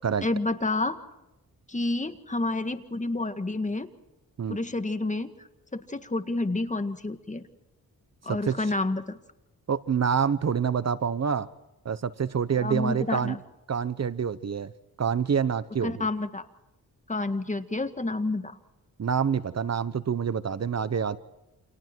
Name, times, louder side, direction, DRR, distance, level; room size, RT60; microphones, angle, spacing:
voice 1, 0.2-1.0 1.7-3.9 4.5-5.3 5.7-7.4 8.2-9.2 12.6-13.4 15.8-16.5 17.1-18.6, left 2 dB, 20° left, 8 dB, 1.8 m, -29 dB
voice 2, 9.7-11.5 11.8-13.4 13.7-14.7 15.0-16.1 19.0-21.2, right 7 dB, 45° right, 15 dB, 0.9 m, -27 dB
29.5 x 27.5 x 4.6 m, 0.94 s
wide cardioid pair, 100°, 36 cm